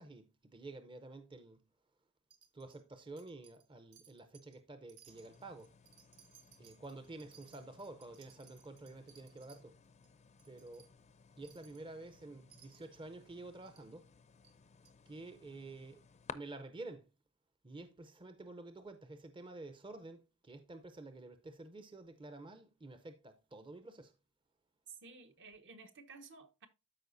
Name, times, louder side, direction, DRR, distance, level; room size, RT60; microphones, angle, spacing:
voice 1, 0.0-1.6 2.5-5.7 6.6-9.8 10.5-10.9 11.4-14.1 15.1-16.0 16.3-17.1 17.6-24.1, right 2 dB, 20° right, 0.6 m, -50 dB
Wind chime, 2.3-2.8 3.2-3.7 3.9-4.6 4.9-9.6 10.0-10.1 10.4-10.9 11.4-11.8 12.5-13.0 13.7-13.9 14.4-14.5 14.9-15.0, right 8 dB, 85° right, 1.3 m, -63 dB
sound 1, 5.1-16.3, left 6 dB, 30° left, 0.5 m, -57 dB
voice 2, 24.9-26.7, right 4 dB, 55° right, 1.0 m, -54 dB
13.0 x 4.9 x 2.6 m
head